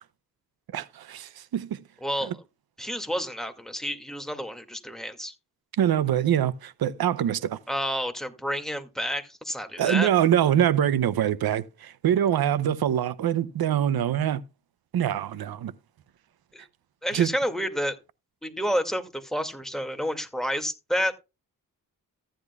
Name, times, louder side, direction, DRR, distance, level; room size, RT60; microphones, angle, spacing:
voice 1, 0.7-1.8 2.3-2.4 5.8-7.6 9.8-14.4 14.9-15.7 17.1-17.3, right 10 dB, 90° right, 0.7 m, -24 dB
voice 2, 2.0-2.4 2.8-5.3 7.7-10.1 16.5-16.7 17.0-18.0 18.4-21.2, equal, ahead, 2.2 m, -30 dB
14.5 x 10.0 x 2.3 m
cardioid pair, 60°, 36 cm